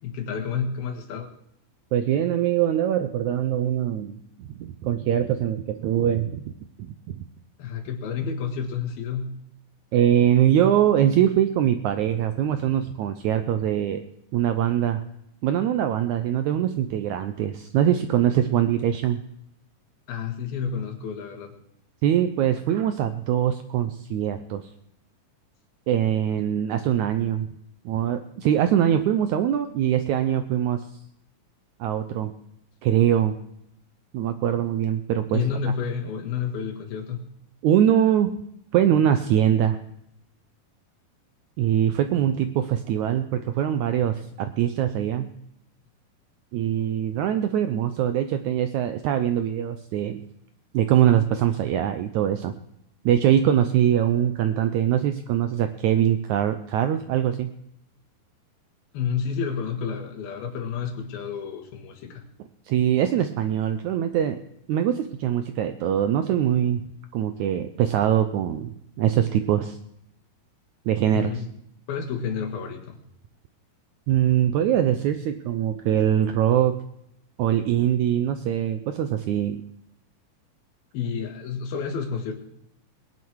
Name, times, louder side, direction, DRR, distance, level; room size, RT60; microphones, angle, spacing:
voice 1, 0.0-1.3 7.6-9.3 20.1-21.6 35.3-37.3 58.9-62.2 71.1-71.4 71.9-73.0 80.9-82.4, left 6 dB, 85° left, 4 dB, 3.6 m, -30 dB
voice 2, 1.9-6.4 6.8-7.2 9.9-14.0 14.3-15.0 15.4-19.2 22.0-24.7 25.9-27.5 27.8-30.9 31.8-32.3 32.8-33.4 34.1-35.4 37.6-38.4 38.7-39.8 41.6-45.3 46.5-50.2 50.7-52.5 53.0-57.5 62.7-64.4 64.7-66.9 67.1-69.8 70.9-71.4 74.1-76.8 77.4-79.6, right 10 dB, 85° right, 9 dB, 1.6 m, -23 dB
20.5 x 10.5 x 4.7 m, 0.79 s
omnidirectional pair, 4.2 m